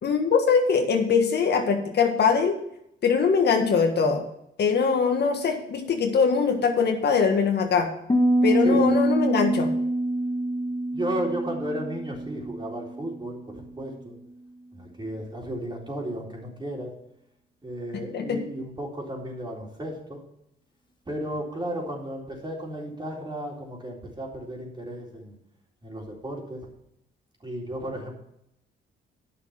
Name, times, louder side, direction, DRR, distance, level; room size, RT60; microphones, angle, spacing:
voice 1, 0.0-2.5 3.0-4.2 4.6-7.9 8.4-9.7 18.1-18.4, left 5 dB, 55° left, 4 dB, 1.6 m, -22 dB
Piano, 8.1-13.7, right 1 dB, 20° left, 1.8 m, -25 dB
voice 2, 10.9-14.1 14.7-16.9 17.6-20.2 21.1-25.4 25.8-26.7 27.4-28.1, right 1 dB, 25° right, -1 dB, 3.8 m, -34 dB
10.0 x 6.5 x 5.8 m, 0.79 s
cardioid pair, 90°, 20 cm